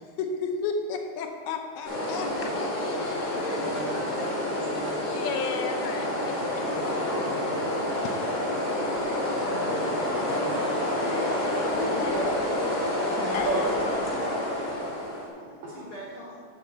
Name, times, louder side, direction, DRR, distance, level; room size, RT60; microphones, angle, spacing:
voice 1, 0.2-3.4 5.0-6.1 8.0-8.2 11.0-12.2 13.2-13.5, left 5 dB, 80° left, 4 dB, 2.4 m, -33 dB
sound 1, 1.8-15.3, left 1 dB, 40° left, 0.8 m, -28 dB
voice 2, 3.3-4.6 6.4-6.5 15.7-16.4, equal, 60° left, -6 dB, 1.4 m, -41 dB
voice 3, 10.2-11.4 11.9-12.4 13.2-13.7 15.1-15.9, right 2 dB, 75° right, -5 dB, 1.6 m, -35 dB
8.4 x 4.3 x 7.1 m, 2.3 s
omnidirectional pair, 4.6 m